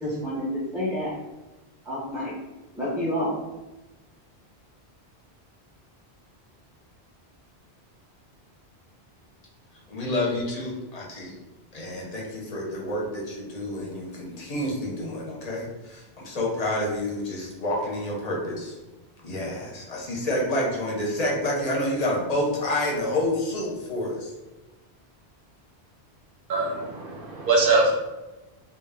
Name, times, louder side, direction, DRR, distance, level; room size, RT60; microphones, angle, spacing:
voice 1, 0.0-1.1 1.9-2.3 2.8-3.3, equal, 5° right, -8 dB, 0.3 m, -28 dB
voice 2, 9.9-11.3 11.7-18.8 19.2-24.3, left 1 dB, 45° left, -3 dB, 0.6 m, -28 dB
voice 3, 26.5-27.9, right 3 dB, 60° right, 0 dB, 0.7 m, -22 dB
2.3 x 2.0 x 3.3 m, 1.1 s
omnidirectional pair, 1.1 m